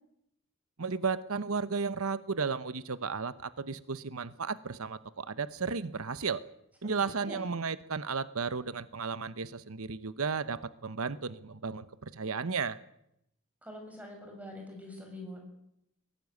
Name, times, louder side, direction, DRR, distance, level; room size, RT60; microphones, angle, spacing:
voice 1, 0.8-6.4 6.8-12.8, right 5 dB, 85° right, 15 dB, 1.0 m, -34 dB
voice 2, 13.6-15.4, left 1 dB, 5° right, 2 dB, 6.7 m, -44 dB
22.0 x 18.0 x 9.5 m, 0.79 s
head